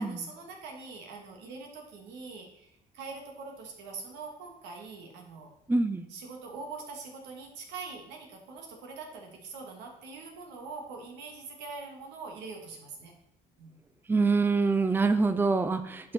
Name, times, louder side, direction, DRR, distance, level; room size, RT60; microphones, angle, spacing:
voice 1, 0.0-5.5 6.1-13.1 13.6-13.8, right 4 dB, 85° right, 1 dB, 2.5 m, -43 dB
voice 2, 5.7-6.1 14.1-16.1, right 3 dB, 10° right, 10 dB, 0.6 m, -25 dB
11.5 x 6.6 x 4.4 m, 0.84 s
cardioid pair, 110°, 17 cm